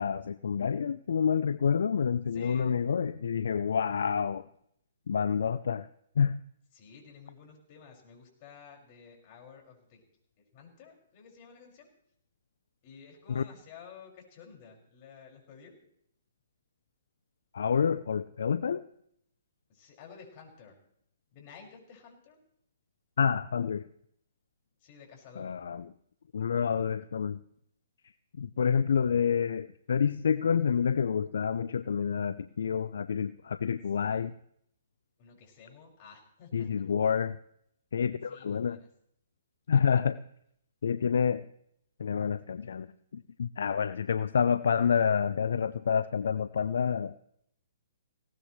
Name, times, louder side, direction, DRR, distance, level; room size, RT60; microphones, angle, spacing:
voice 1, 0.0-4.5 5.1-5.9 6.2-6.4 13.3-13.4 17.5-18.8 23.2-23.9 25.4-25.9 26.3-27.4 28.4-34.3 36.5-37.4 37.9-38.8 39.7-40.2 40.8-41.4 42.0-42.9 43.1-47.1, left 7 dB, 70° left, 14 dB, 0.5 m, -28 dB
voice 2, 2.3-2.7 6.7-10.0 10.5-11.9 12.8-15.7 19.7-20.8 21.3-22.4 24.8-25.5 34.0-34.3 35.2-36.9 38.3-38.9, left 6 dB, 40° left, 1 dB, 5.9 m, -52 dB
19.5 x 18.0 x 3.2 m, 0.71 s
hypercardioid pair, 130°, 0 cm